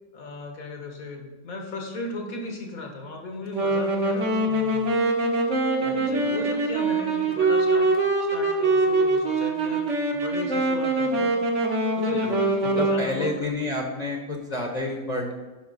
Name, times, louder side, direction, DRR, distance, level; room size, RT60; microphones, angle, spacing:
voice 1, 0.1-4.9 5.8-7.9 8.3-11.5 12.0-13.5, left 2 dB, 70° left, 2 dB, 1.9 m, -36 dB
Wind instrument woodwind instrument, 3.5-13.1, right 2 dB, 55° right, 1.5 m, -23 dB
voice 2, 5.8-6.4 6.7-6.8 9.6-9.7 12.2-15.3, left 2 dB, 30° left, 1 dB, 1.0 m, -30 dB
11.5 x 5.5 x 4.1 m, 1.2 s
omnidirectional pair, 1.5 m